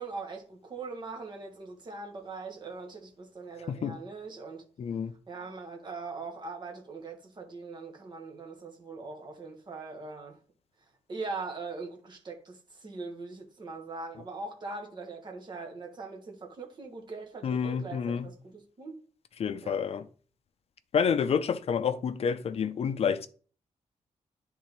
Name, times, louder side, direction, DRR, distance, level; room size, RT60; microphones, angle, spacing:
voice 1, 0.0-4.6 5.3-10.4 11.1-19.0 19.6-19.8, right 3 dB, 35° right, 1.3 m, -41 dB
voice 2, 4.8-5.1 17.4-18.3 19.4-20.1 20.9-23.3, left 7 dB, 55° left, 0.5 m, -29 dB
10.0 x 3.7 x 3.0 m
wide cardioid pair, 160°, 13 cm